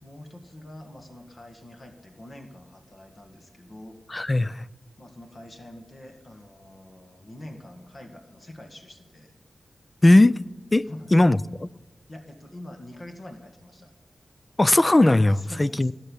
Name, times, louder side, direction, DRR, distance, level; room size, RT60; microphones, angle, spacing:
voice 1, 0.0-4.0 5.0-9.3 10.8-11.4 12.1-13.9 15.3-15.9, left 1 dB, 45° left, 1.9 m, -45 dB
voice 2, 4.1-4.7 10.0-10.4 10.7-11.7 14.6-15.9, left 2 dB, 25° left, 0.4 m, -19 dB
16.5 x 6.7 x 9.9 m
cardioid pair, 65°, 0 cm